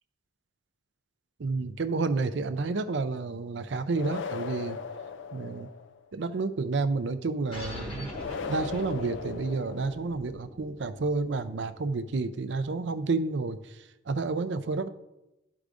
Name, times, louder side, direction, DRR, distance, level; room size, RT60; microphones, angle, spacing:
voice 1, 1.4-4.8 5.3-5.7 6.1-8.1 8.5-13.7 14.1-14.9, right 3 dB, 65° right, 11 dB, 0.5 m, -30 dB
sound 1, 3.9-6.0 8.1-10.2, left 6 dB, 70° left, 0.4 m, -38 dB
sound 2, 7.5-12.6, left 1 dB, 25° left, 1.3 m, -43 dB
13.0 x 4.8 x 2.5 m, 0.94 s
head